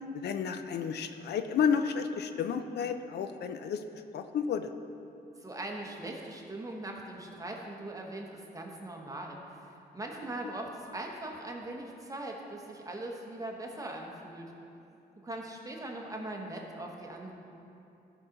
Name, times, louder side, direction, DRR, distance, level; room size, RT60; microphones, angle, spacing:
voice 1, 0.1-3.8 4.1-4.7, left 7 dB, 85° left, 9 dB, 0.5 m, -31 dB
voice 2, 5.4-9.7 9.9-14.5 15.2-17.3, right 1 dB, 20° right, 0 dB, 1.3 m, -40 dB
12.5 x 5.9 x 4.0 m, 2.7 s
cardioid pair, 85°, 17 cm